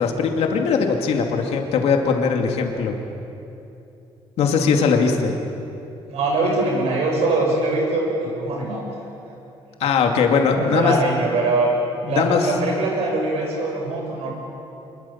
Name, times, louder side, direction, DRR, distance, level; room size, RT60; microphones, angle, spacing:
voice 1, 0.0-3.0 4.4-5.4 9.8-11.0 12.0-12.5, left 5 dB, 75° left, 3 dB, 2.6 m, -20 dB
voice 2, 6.1-8.8 10.5-11.7 12.1-14.3, right 2 dB, 85° right, 0 dB, 7.4 m, -22 dB
25.5 x 22.5 x 7.3 m, 2.8 s
cardioid pair, 130°, 11 cm